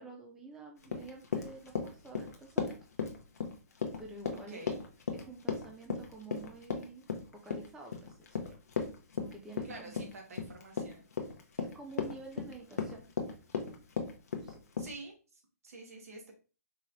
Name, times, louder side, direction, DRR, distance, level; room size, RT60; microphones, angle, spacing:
voice 1, 0.0-2.8 4.0-4.8 5.1-7.0 7.3-8.6 9.2-9.9 11.6-13.1 14.4-14.6, right 3 dB, 5° right, 1 dB, 0.3 m, -49 dB
Run, 0.8-14.9, left 5 dB, 75° left, 0.9 m, -36 dB
voice 2, 4.5-4.8 9.6-11.0 14.8-16.3, right 2 dB, 65° right, 2 dB, 1.5 m, -48 dB
4.7 x 3.0 x 2.6 m, 0.34 s
hypercardioid pair, 155°, 9 cm